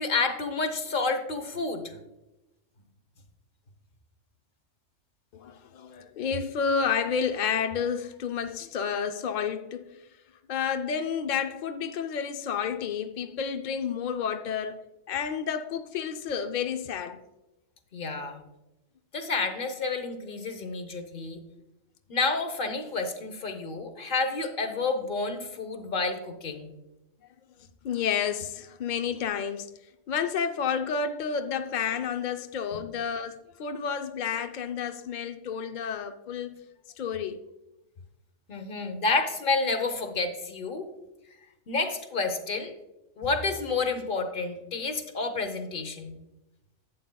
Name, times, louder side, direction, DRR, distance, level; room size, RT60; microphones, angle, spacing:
voice 1, 0.0-2.0 17.9-18.4 19.1-21.4 22.1-26.7 38.5-40.9 41.7-42.7 43.2-46.2, left 3 dB, 45° left, 1.0 m, -29 dB
voice 2, 5.3-10.0 10.5-14.8 15.1-17.2 27.8-29.7 30.1-36.6 37.0-37.4, left 7 dB, 70° left, 0.4 m, -30 dB
11.0 x 8.4 x 2.2 m
omnidirectional pair, 1.3 m